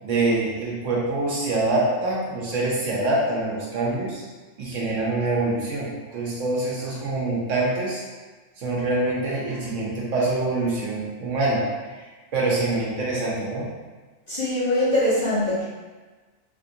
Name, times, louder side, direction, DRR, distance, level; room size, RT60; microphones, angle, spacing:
voice 1, 0.0-4.2 4.6-8.0 8.6-11.6 11.9-12.0 12.3-13.7, right 2 dB, 80° right, -5 dB, 1.2 m, -25 dB
voice 2, 14.3-15.6, left 1 dB, 40° left, -9 dB, 0.7 m, -22 dB
3.3 x 2.6 x 2.7 m, 1.3 s
omnidirectional pair, 1.3 m